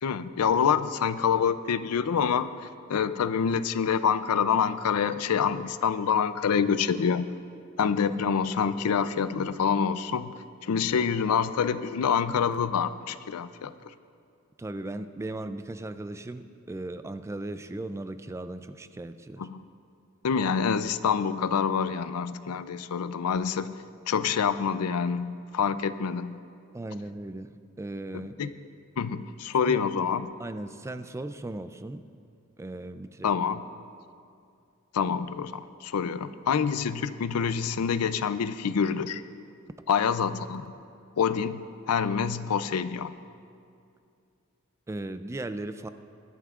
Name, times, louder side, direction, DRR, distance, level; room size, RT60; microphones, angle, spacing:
voice 1, 0.0-2.5 2.9-7.3 7.8-10.3 10.6-13.7 19.4-19.6 20.2-23.7 24.1-26.4 28.1-28.5 29.0-30.3 33.2-33.6 34.9-39.2 39.9-40.7 41.2-41.6 41.9-43.1, left 6 dB, 75° left, 14 dB, 0.4 m, -26 dB
voice 2, 14.6-19.5 26.7-28.4 29.7-29.8 30.4-32.1 32.6-33.4 44.9-45.9, right 2 dB, 15° right, 11 dB, 0.3 m, -37 dB
23.0 x 11.0 x 2.4 m, 2.4 s
head